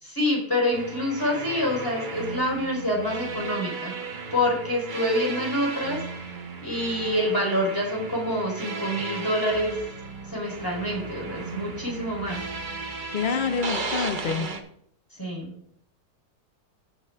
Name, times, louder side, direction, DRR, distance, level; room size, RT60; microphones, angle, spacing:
voice 1, 0.0-3.9 4.3-6.0 6.6-9.7 10.3-12.4 15.2-15.5, left 1 dB, 15° left, -1 dB, 4.5 m, -26 dB
sound 1, 0.7-14.6, right 3 dB, 35° right, 0.9 m, -35 dB
voice 2, 13.1-14.5, left 6 dB, 85° left, 9 dB, 0.4 m, -27 dB
15.0 x 8.8 x 2.4 m, 0.68 s
omnidirectional pair, 1.7 m